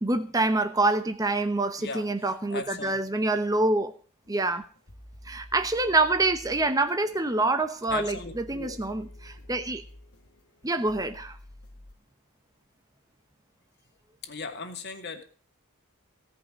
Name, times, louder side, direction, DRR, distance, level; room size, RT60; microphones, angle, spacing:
voice 1, 0.0-3.9 4.3-4.6 5.2-9.8 10.6-11.4, right 2 dB, 15° right, 8 dB, 0.9 m, -26 dB
voice 2, 1.8-3.0 7.9-8.8 14.2-15.2, left 4 dB, 50° left, 4 dB, 2.3 m, -38 dB
sound 1, 4.3-11.9, left 1 dB, 70° left, 1.9 m, -49 dB
17.0 x 5.6 x 8.8 m, 0.38 s
head